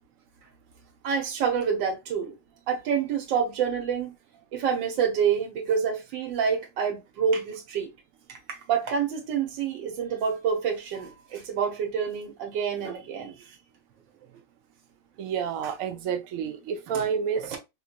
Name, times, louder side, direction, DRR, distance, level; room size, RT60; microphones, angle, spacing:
voice 1, 1.0-2.3 2.7-4.1 4.5-7.9 8.3-13.5 16.9-17.0 17.5-17.6, right 7 dB, 80° right, 1.7 m, -27 dB
voice 2, 15.2-17.6, right 7 dB, 65° right, 0.9 m, -29 dB
3.7 x 3.1 x 2.3 m
omnidirectional pair, 2.0 m